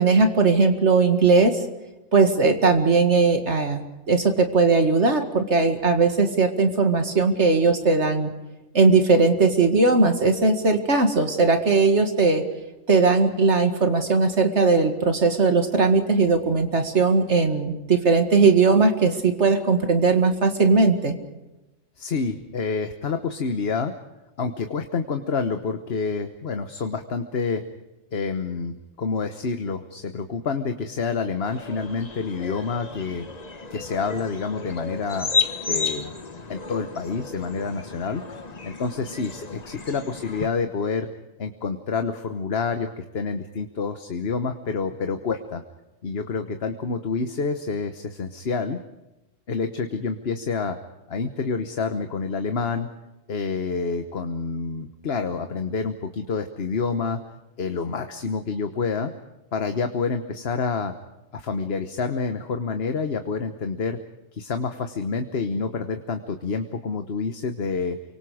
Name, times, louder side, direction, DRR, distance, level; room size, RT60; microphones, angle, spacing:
voice 1, 0.0-1.6 2.1-3.8 4.1-8.3 8.7-12.4 12.9-21.1, right 4 dB, 60° right, 6 dB, 2.3 m, -19 dB
voice 2, 22.0-23.9 24.4-27.6 28.1-33.2 33.7-35.3 35.7-36.1 36.5-38.2 38.6-41.1 41.4-45.6 46.0-48.8 49.5-50.8 51.1-52.9 53.3-57.2 57.6-59.1 59.5-60.9 61.3-64.0 64.3-68.0, left 4 dB, 55° left, 7 dB, 1.3 m, -28 dB
sound 1, 31.5-40.5, left 4 dB, 35° left, 1.3 m, -32 dB
29.5 x 24.5 x 5.0 m, 1.0 s
omnidirectional pair, 1.3 m